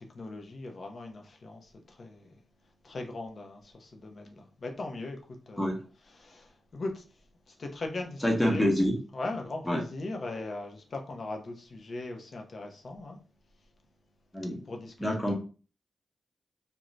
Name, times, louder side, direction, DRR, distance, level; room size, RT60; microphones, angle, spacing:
voice 1, 0.0-2.3 2.8-5.7 6.1-7.0 7.5-8.7 9.1-13.2 14.6-15.2, left 2 dB, 55° left, 0.6 m, -39 dB
voice 2, 8.2-9.0 9.6-9.8 14.3-14.6 15.0-15.3, equal, 15° left, 0.9 m, -26 dB
2.5 x 2.2 x 3.1 m
cardioid pair, 65°, 0 cm